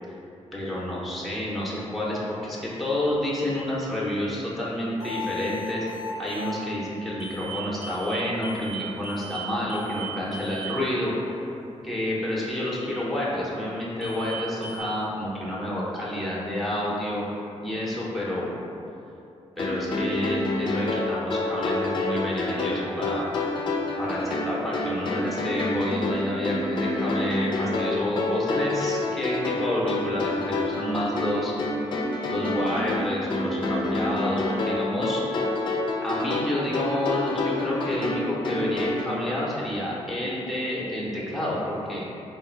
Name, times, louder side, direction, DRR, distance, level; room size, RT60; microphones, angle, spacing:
voice 1, 0.5-5.8 6.2-11.1 11.8-17.2 17.6-18.5 19.6-23.3 24.0-31.5 32.3-35.2 36.0-42.0, left 1 dB, ahead, -6 dB, 0.8 m, -29 dB
sound 1, 5.0-6.6 7.2-7.6 7.8-8.2 8.4-8.8 9.0-9.4 9.7-10.0 10.3-10.7 14.0-14.4 14.6-14.8, equal, 75° right, 1.0 m, -37 dB
sound 2, 19.6-39.1, left 2 dB, 45° left, 0.4 m, -28 dB
3.5 x 2.4 x 4.4 m, 2.8 s
wide cardioid pair, 115°, 12 cm